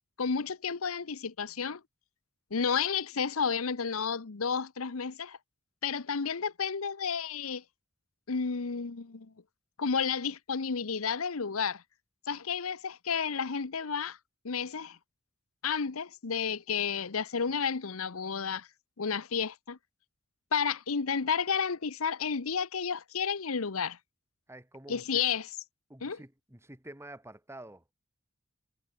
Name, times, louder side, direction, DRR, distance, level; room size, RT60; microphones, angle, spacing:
voice 1, 0.2-1.8 2.5-5.4 5.8-7.6 8.3-9.3 9.8-11.8 12.3-14.2 14.4-15.0 15.6-18.7 19.0-19.8 20.5-24.0 24.9-25.5 26.0-26.2, left 6 dB, 85° left, 0.9 m, -31 dB
voice 2, 24.5-25.2 25.9-27.9, right 1 dB, 15° right, 2.5 m, -48 dB
head